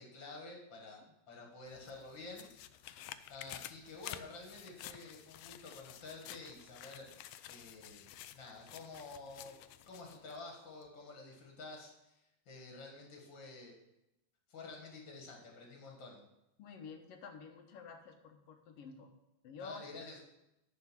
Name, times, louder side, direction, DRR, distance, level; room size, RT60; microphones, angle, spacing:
voice 1, 0.0-2.5 3.3-7.1 7.5-8.0 8.3-9.6 9.9-13.8 14.5-16.2 19.6-20.2, left 3 dB, 45° left, 0 dB, 2.0 m, -50 dB
sound 1, 1.7-10.4 10.8-10.9, left 12 dB, 80° left, 1.5 m, -51 dB
voice 2, 16.6-19.1 19.4-19.8, left 5 dB, 65° left, 5 dB, 1.8 m, -50 dB
10.5 x 4.7 x 7.3 m, 0.90 s
omnidirectional pair, 3.3 m